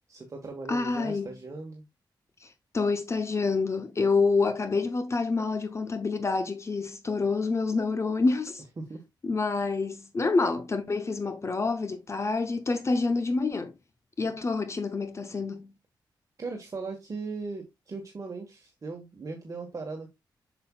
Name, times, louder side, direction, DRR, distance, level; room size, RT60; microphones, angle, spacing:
voice 1, 0.1-1.8 8.8-9.0 16.4-20.1, right 3 dB, 40° right, 1.4 m, -38 dB
voice 2, 0.7-1.3 2.4-8.6 9.2-13.7 14.2-15.7, left 4 dB, 35° left, 0.7 m, -27 dB
7.6 x 6.0 x 2.3 m
wide cardioid pair, 110°, 8 cm